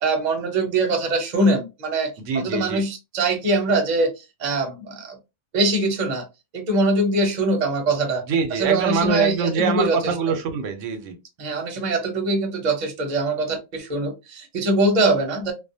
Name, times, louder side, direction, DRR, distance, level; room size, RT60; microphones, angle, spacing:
voice 1, 0.0-4.1 4.4-5.2 5.5-6.3 6.5-8.2 8.5-10.1 11.4-15.5, right 2 dB, 45° right, 0.7 m, -22 dB
voice 2, 2.2-2.8 8.2-11.2, right 6 dB, 85° right, 0.9 m, -24 dB
2.4 x 2.1 x 2.6 m
omnidirectional pair, 1.3 m